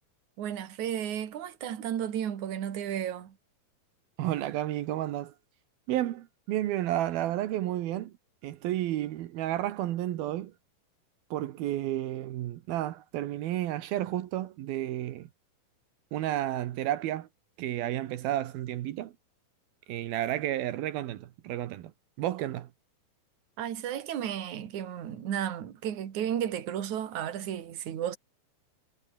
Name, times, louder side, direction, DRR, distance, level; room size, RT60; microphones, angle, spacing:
voice 1, 0.4-3.3 23.6-28.2, right 10 dB, 55° right, 3.3 m, -33 dB
voice 2, 4.2-5.3 5.9-8.1 8.4-10.5 11.3-15.3 16.1-17.3 17.6-19.1 19.9-21.9 22.2-22.7, right 13 dB, 80° right, 3.1 m, -31 dB
omnidirectional pair, 4.3 m